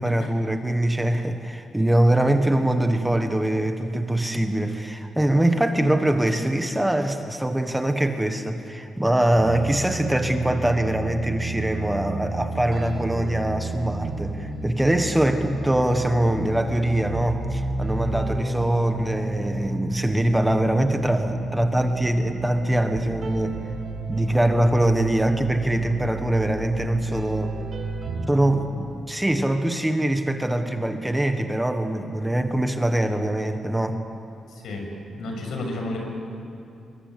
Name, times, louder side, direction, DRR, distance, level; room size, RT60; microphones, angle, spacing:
voice 1, 0.0-23.6 24.1-27.5 28.3-34.0, right 1 dB, 5° right, 6 dB, 1.3 m, -23 dB
sound 1, 9.4-28.3, right 2 dB, 55° right, 5.1 m, -31 dB
voice 2, 34.5-34.9 35.1-36.0, left 2 dB, 80° left, 1 dB, 7.0 m, -32 dB
26.5 x 23.5 x 8.4 m, 2.8 s
wide cardioid pair, 145°, 0 cm